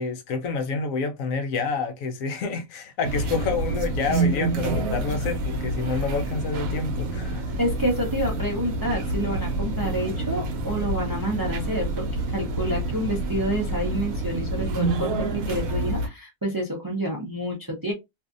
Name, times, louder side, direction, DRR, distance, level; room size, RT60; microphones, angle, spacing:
voice 1, 0.0-7.5, left 4 dB, 75° left, 1.0 m, -28 dB
sound 1, 3.0-16.1, right 2 dB, 85° right, 1.1 m, -28 dB
voice 2, 7.6-17.9, equal, 25° right, 0.5 m, -28 dB
2.6 x 2.4 x 2.4 m
omnidirectional pair, 1.4 m